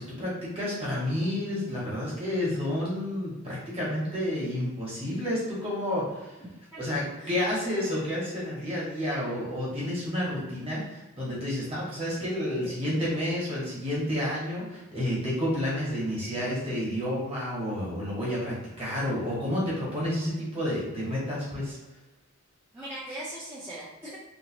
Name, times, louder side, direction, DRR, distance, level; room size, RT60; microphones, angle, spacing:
voice 1, 0.0-6.3 6.8-21.8, left 1 dB, 25° right, -7 dB, 1.3 m, -30 dB
voice 2, 6.7-7.3 22.7-24.2, right 1 dB, 10° right, -10 dB, 0.6 m, -40 dB
3.2 x 2.8 x 2.9 m, 1.1 s
head